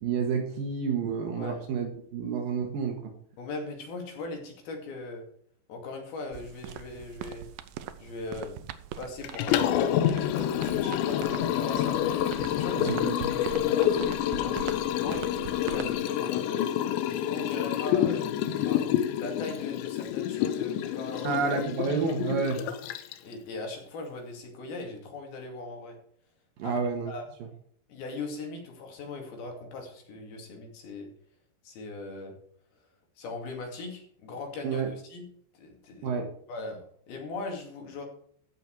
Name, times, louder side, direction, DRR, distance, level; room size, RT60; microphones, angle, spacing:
voice 1, 0.0-3.1 12.8-13.3 13.6-13.7 21.2-22.6 26.6-27.1 27.4-27.5 34.6-34.9 36.0-36.3, right 5 dB, 65° right, 4 dB, 2.8 m, -30 dB
voice 2, 3.4-5.2 5.7-7.5 8.0-12.9 13.3-15.2 15.6-16.6 17.1-18.4 18.6-18.8 19.2-21.4 23.2-26.0 26.6-26.8 27.1-27.3 27.9-31.1 31.6-32.3 33.2-35.3 35.5-36.2 36.5-38.0, left 3 dB, 60° left, 2 dB, 4.2 m, -39 dB
sound 1, 6.3-16.0, right 11 dB, 85° right, 2.0 m, -42 dB
Liquid, 9.2-23.3, left 11 dB, 85° left, 3.2 m, -28 dB
15.0 x 6.8 x 4.7 m, 0.64 s
omnidirectional pair, 5.1 m